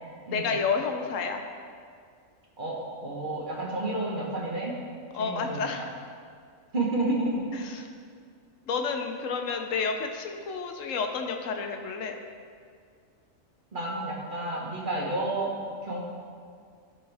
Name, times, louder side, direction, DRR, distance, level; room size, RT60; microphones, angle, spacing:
voice 1, 0.3-1.5 5.1-5.9 7.6-7.8 8.7-12.2, left 5 dB, 75° left, 4 dB, 1.0 m, -30 dB
voice 2, 2.6-4.8 5.1-5.9 6.7-7.5 13.7-15.5 15.8-16.0, right 2 dB, 40° right, -3 dB, 1.3 m, -30 dB
12.5 x 4.4 x 3.4 m, 2.1 s
omnidirectional pair, 1.4 m